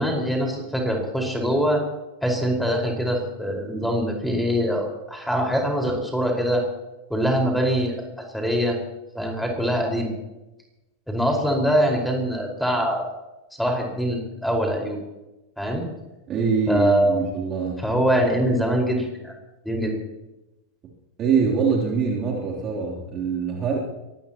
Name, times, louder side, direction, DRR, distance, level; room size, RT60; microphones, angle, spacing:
voice 1, 0.0-1.8 2.2-6.6 7.1-8.1 8.3-8.8 9.1-10.1 11.1-13.1 13.6-15.0 15.6-15.8 16.7-17.2 17.8-19.3 19.6-19.9, equal, ahead, 1 dB, 4.8 m, -23 dB
voice 2, 16.3-17.9 18.1-18.3 21.2-23.8, right 5 dB, 30° right, -3 dB, 3.2 m, -24 dB
23.5 x 18.5 x 3.0 m, 1.0 s
figure-of-eight pair, 90°, 0 cm